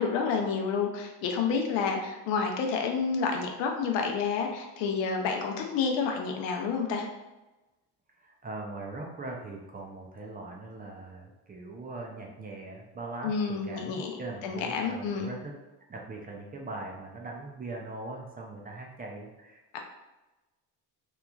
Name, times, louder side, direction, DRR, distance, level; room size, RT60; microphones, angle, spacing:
voice 1, 0.0-7.1 13.2-15.3 19.7-19.8, left 5 dB, 85° left, 3 dB, 0.6 m, -29 dB
voice 2, 8.1-15.5 15.9-19.8, right 2 dB, 25° right, 0 dB, 0.3 m, -41 dB
2.9 x 2.3 x 2.3 m, 1.1 s
cardioid pair, 105°, 42 cm